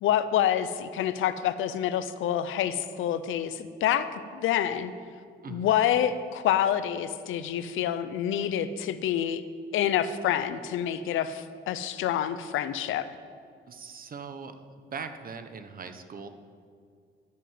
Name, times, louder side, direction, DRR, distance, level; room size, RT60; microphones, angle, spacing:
voice 1, 0.0-4.9 5.5-9.4 9.7-13.1, left 10 dB, 85° left, 13 dB, 0.7 m, -27 dB
voice 2, 13.7-14.5 14.9-16.3, right 5 dB, 45° right, 8 dB, 1.2 m, -40 dB
11.5 x 9.2 x 7.6 m, 2.2 s
cardioid pair, 90°, 20 cm